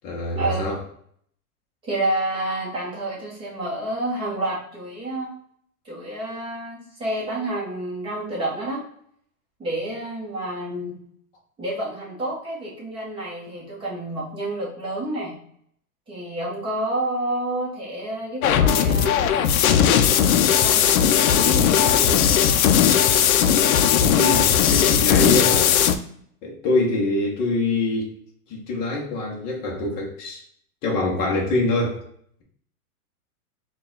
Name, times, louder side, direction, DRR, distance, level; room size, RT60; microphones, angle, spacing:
voice 1, 0.0-0.8 24.1-25.8 26.4-28.1 28.5-30.4 30.8-32.0, left 2 dB, 20° left, -1 dB, 0.7 m, -24 dB
voice 2, 1.8-5.3 5.8-8.8 9.6-11.0 11.6-15.4 16.1-19.2 20.6-21.0 21.3-22.6, right 1 dB, 10° right, -5 dB, 0.9 m, -29 dB
sound 1, 18.4-25.9, left 9 dB, 65° left, 0.5 m, -18 dB
4.0 x 2.4 x 3.8 m, 0.65 s
hypercardioid pair, 155°, 46 cm